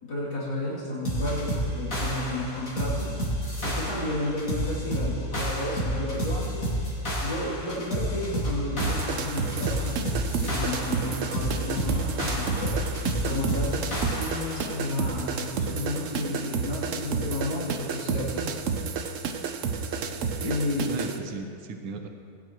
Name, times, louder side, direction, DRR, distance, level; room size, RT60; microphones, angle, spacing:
voice 1, 0.0-3.2 3.6-6.7 7.2-10.0 10.4-12.8 13.2-18.5 20.4-21.1, left 1 dB, 85° left, -8 dB, 3.6 m, -32 dB
sound 1, 1.0-14.6, equal, 50° left, 2.9 m, -30 dB
sound 2, 8.8-21.2, right 5 dB, 60° right, 0.9 m, -31 dB
voice 2, 19.8-20.6 20.8-22.1, right 3 dB, 90° right, 5 dB, 1.5 m, -37 dB
20.0 x 10.5 x 3.1 m, 2.4 s
omnidirectional pair, 1.9 m